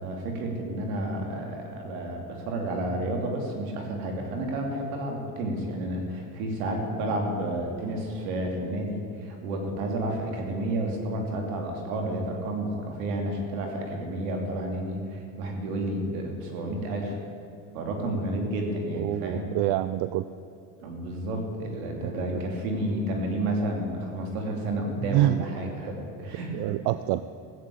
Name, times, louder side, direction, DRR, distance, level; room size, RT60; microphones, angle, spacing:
voice 1, 0.0-17.2 17.7-19.5 20.8-26.7, right 1 dB, 90° right, 2 dB, 2.9 m, -31 dB
voice 2, 18.9-20.3 22.3-22.4 25.0-25.4 26.5-27.2, right 15 dB, 70° right, 13 dB, 0.6 m, -26 dB
15.0 x 8.3 x 8.5 m, 2.5 s
supercardioid pair, 100°, 40 cm